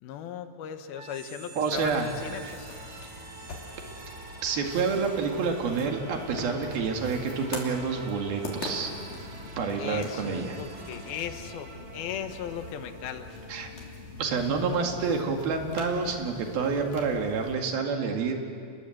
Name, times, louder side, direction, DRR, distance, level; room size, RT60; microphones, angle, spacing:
voice 1, 0.0-2.7 9.8-13.3, left 9 dB, 90° left, 8 dB, 3.1 m, -37 dB
sound 1, 0.9-14.8, right 2 dB, 55° right, 3.8 m, -46 dB
voice 2, 1.6-2.1 2.4-2.5 4.4-8.9 9.6-10.6 13.5-13.7 14.2-18.3, right 5 dB, 80° right, 3 dB, 4.0 m, -28 dB
sound 2, 1.7-17.5, left 2 dB, 60° left, 4.5 m, -43 dB
29.0 x 21.0 x 7.9 m, 2.4 s
omnidirectional pair, 4.2 m